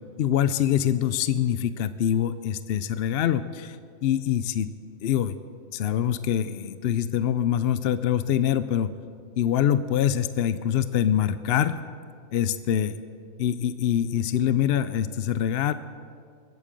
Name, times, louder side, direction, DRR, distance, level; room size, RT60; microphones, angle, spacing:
voice 1, 0.2-3.8 4.0-4.7 5.0-5.4 5.7-8.9 9.4-11.8 12.3-13.0 13.4-15.7, left 10 dB, 60° left, 13 dB, 0.6 m, -24 dB
21.0 x 8.8 x 7.6 m, 2.2 s
omnidirectional pair, 1.4 m